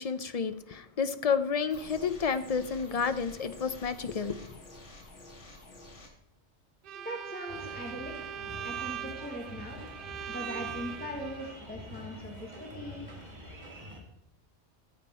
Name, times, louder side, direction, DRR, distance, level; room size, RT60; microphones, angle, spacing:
voice 1, 0.0-4.5, left 6 dB, 45° left, 12 dB, 0.6 m, -30 dB
sound 1, 1.7-6.1, left 2 dB, 90° left, 2.2 m, -49 dB
Bowed string instrument, 6.8-11.6, right 9 dB, 60° right, 0.6 m, -40 dB
voice 2, 6.9-8.3 8.6-9.8 10.3-13.1, equal, 10° left, 1 dB, 1.4 m, -41 dB
sound 2, 7.5-14.0, equal, 35° right, 2.2 m, -46 dB
14.0 x 7.3 x 4.2 m, 0.81 s
omnidirectional pair, 1.2 m